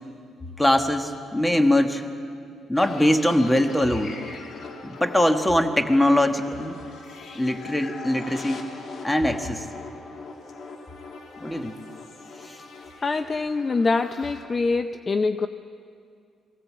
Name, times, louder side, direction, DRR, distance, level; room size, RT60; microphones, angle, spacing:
voice 1, 0.6-2.0 2.7-4.1 4.8-6.8 7.3-8.7 9.0-9.7 11.4-11.8 12.4-12.6, left 1 dB, 10° left, 6 dB, 1.6 m, -22 dB
sound 1, 2.8-14.5, left 3 dB, 60° left, 2.0 m, -42 dB
sound 2, 4.3-14.9, left 3 dB, 85° left, 3.6 m, -49 dB
voice 2, 13.0-15.5, left 4 dB, 35° left, 10 dB, 0.6 m, -24 dB
23.0 x 16.5 x 7.6 m, 2.3 s
cardioid pair, 90°, 0 cm